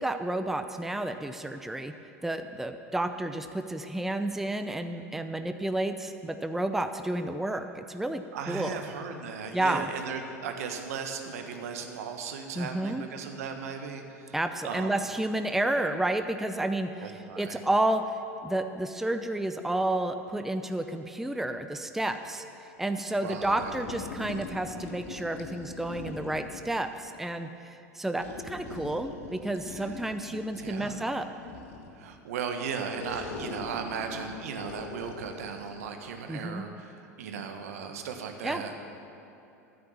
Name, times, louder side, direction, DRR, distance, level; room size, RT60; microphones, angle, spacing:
voice 1, 0.0-1.9 2.2-8.8 9.5-9.9 12.6-13.0 14.3-18.0 18.4-22.4 22.8-31.3 36.3-36.6 38.4-38.6, right 1 dB, 5° right, 8 dB, 0.6 m, -31 dB
voice 2, 8.3-14.3 14.6-14.9 17.0-17.6 23.2-23.6 29.7-29.9 30.5-31.0 32.0-38.7, right 6 dB, 65° right, 5 dB, 1.4 m, -37 dB
sound 1, 23.4-26.8 28.2-32.0 33.0-35.9, left 4 dB, 60° left, 1.7 m, -42 dB
13.5 x 9.6 x 7.2 m, 2.9 s
figure-of-eight pair, 80°, 9 cm